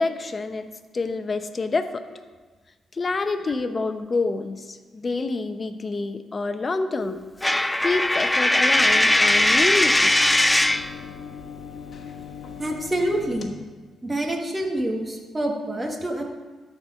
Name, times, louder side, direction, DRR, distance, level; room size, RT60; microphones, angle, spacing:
voice 1, 0.0-2.1 2.9-7.2 7.8-10.1, left 3 dB, 40° left, 9 dB, 0.8 m, -27 dB
Coin (dropping), 7.4-10.9, left 1 dB, 15° left, 0.4 m, -19 dB
sound 1, 8.8-13.4, left 7 dB, 55° left, 1.3 m, -39 dB
voice 2, 12.6-13.5 14.0-16.2, right 1 dB, 25° right, 1 dB, 2.0 m, -27 dB
13.0 x 4.6 x 5.7 m, 1.3 s
supercardioid pair, 60°, 0 cm